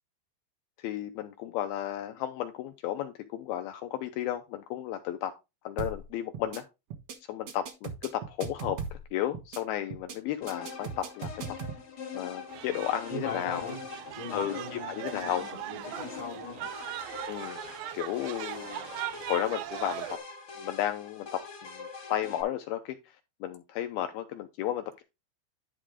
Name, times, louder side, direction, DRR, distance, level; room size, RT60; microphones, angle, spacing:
voice 1, 0.8-5.3 5.6-6.6 7.3-8.8 9.1-11.3 12.1-13.7 14.3-15.5 17.3-17.6 17.9-18.9 19.3-20.2 20.6-23.0 23.4-25.0, left 12 dB, 85° left, 2.2 m, -33 dB
sound 1, 5.8-6.1 6.3-6.6 6.9-7.2 7.5-9.1 9.3-9.6 9.9-10.2 10.5-11.8, right 6 dB, 75° right, 1.4 m, -38 dB
sound 2, 10.4-22.4, left 6 dB, 65° left, 0.9 m, -44 dB
sound 3, 12.5-20.2, right 13 dB, 90° right, 2.1 m, -40 dB
voice 2, 13.1-13.8 14.1-16.7, left 2 dB, 25° left, 1.0 m, -40 dB
11.0 x 3.7 x 4.8 m
omnidirectional pair, 5.0 m